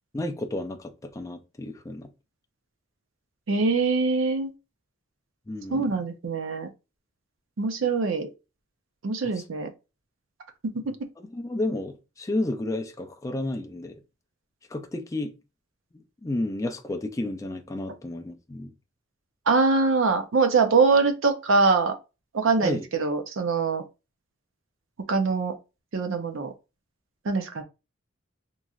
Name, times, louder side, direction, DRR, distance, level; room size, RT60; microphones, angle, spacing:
voice 1, 0.1-2.1 5.5-5.9 9.4-9.5 11.3-14.0 14.7-15.3 16.2-18.7 22.6-22.8, left 1 dB, 15° left, 0.3 m, -31 dB
voice 2, 3.5-4.5 5.7-6.7 7.6-8.3 9.0-9.7 19.5-21.9 22.3-23.8 25.1-25.5 25.9-26.5 27.2-27.6, right 4 dB, 80° right, 0.5 m, -23 dB
3.0 x 2.5 x 2.3 m
head